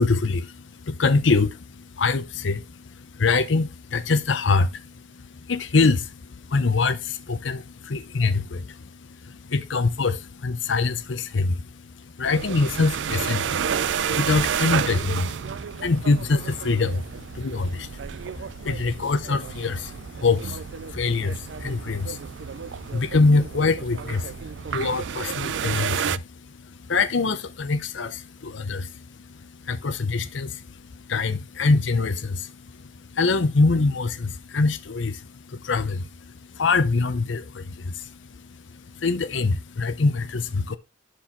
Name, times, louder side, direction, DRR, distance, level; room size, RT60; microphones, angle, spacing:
voice 1, 0.0-40.8, left 3 dB, 85° left, 0.7 m, -25 dB
sound 1, 12.2-26.2, right 7 dB, 75° right, 0.4 m, -31 dB
11.5 x 4.6 x 3.8 m
head